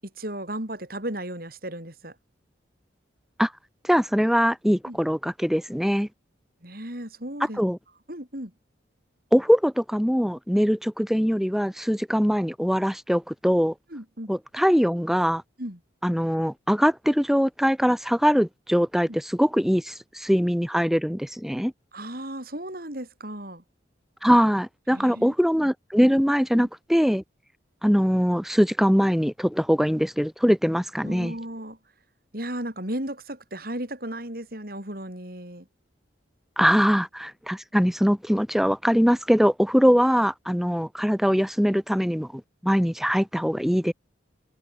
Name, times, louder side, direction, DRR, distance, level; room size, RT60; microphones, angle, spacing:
voice 1, 0.0-2.2 4.8-5.0 6.6-7.6 8.1-8.5 13.9-14.3 15.6-15.8 21.9-23.6 24.9-25.3 26.5-26.7 31.0-31.8 32.3-35.7, right 1 dB, 50° right, 6.1 m, -35 dB
voice 2, 3.8-6.1 7.6-7.8 9.3-13.7 14.3-15.4 16.0-21.7 24.2-27.2 27.8-31.3 36.6-43.9, equal, ahead, 4.0 m, -22 dB
head